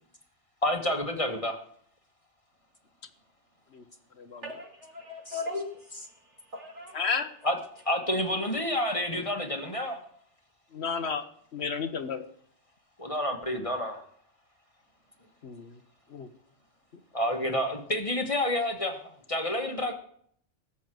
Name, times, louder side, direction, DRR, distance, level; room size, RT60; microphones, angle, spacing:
voice 1, 0.6-1.6 5.3-5.4 7.4-7.6 7.9-10.0 13.0-14.0 17.1-19.0 19.3-19.9, left 1 dB, 25° left, 1.6 m, -29 dB
voice 2, 4.4-7.0, left 3 dB, 65° right, 2.9 m, -39 dB
voice 3, 6.9-7.3 10.7-11.2 11.5-12.2 15.4-15.8 16.1-16.3, left 5 dB, 60° left, 1.2 m, -32 dB
18.0 x 7.3 x 7.7 m
omnidirectional pair, 1.3 m